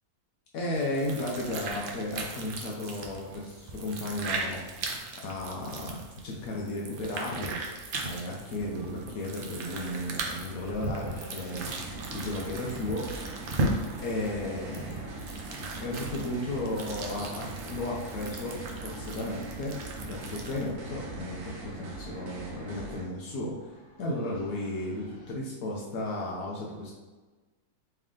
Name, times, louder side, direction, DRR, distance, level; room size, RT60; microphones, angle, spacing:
voice 1, 0.5-4.8 5.2-7.6 8.0-13.1 14.0-15.2 15.8-19.7 20.0-23.7 24.0-26.9, left 1 dB, 75° left, -3 dB, 1.1 m, -34 dB
sound 1, 0.7-20.7, right 2 dB, 65° right, 0.5 m, -38 dB
sound 2, 7.5-25.3, equal, 25° left, 0.6 m, -54 dB
sound 3, 11.5-23.1, right 2 dB, 85° right, 1.3 m, -41 dB
3.3 x 3.3 x 3.6 m, 1.3 s
omnidirectional pair, 1.6 m